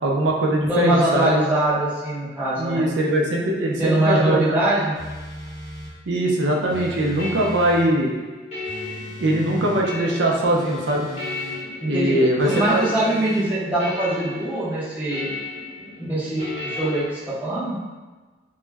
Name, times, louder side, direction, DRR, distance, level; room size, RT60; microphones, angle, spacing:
voice 1, 0.0-1.3 2.6-4.6 6.1-8.1 9.2-11.1 11.9-12.8, right 1 dB, 75° right, -1 dB, 0.5 m, -21 dB
voice 2, 0.7-2.9 3.8-4.9 9.3-9.7 11.8-12.2 12.4-15.3 16.0-17.8, right 1 dB, 10° right, -10 dB, 0.6 m, -22 dB
sound 1, 4.9-6.0 6.7-7.9 8.6-9.9 10.5-11.6 12.4-13.5, left 1 dB, 45° right, 0.7 m, -38 dB
sound 2, 6.5-17.1, left 3 dB, 35° left, 0.7 m, -35 dB
2.2 x 2.0 x 3.3 m, 1.3 s
head